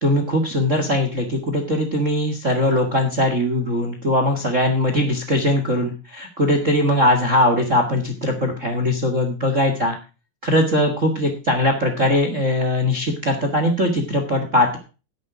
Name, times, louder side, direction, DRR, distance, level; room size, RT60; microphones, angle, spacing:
voice 1, 0.0-10.0 10.4-14.8, left 1 dB, 35° right, 4 dB, 1.3 m, -20 dB
10.5 x 9.8 x 4.8 m, 0.32 s
omnidirectional pair, 3.9 m